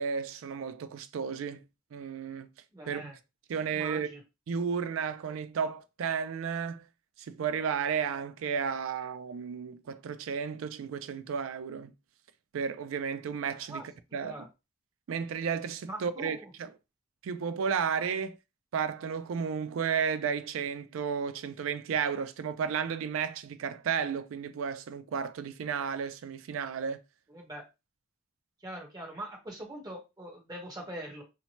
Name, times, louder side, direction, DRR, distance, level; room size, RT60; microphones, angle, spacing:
voice 1, 0.0-1.6 1.9-2.5 2.9-3.1 3.5-4.1 4.5-6.8 7.2-11.9 12.5-13.8 14.1-14.3 15.1-16.7 17.2-18.4 18.7-27.0, right 6 dB, 75° right, 0.3 m, -33 dB
voice 2, 2.7-3.1 3.6-4.2 13.7-13.8 14.2-14.5 15.8-16.5 27.3-27.6 28.6-31.2, right 1 dB, 20° right, 0.9 m, -42 dB
2.7 x 2.1 x 2.9 m
head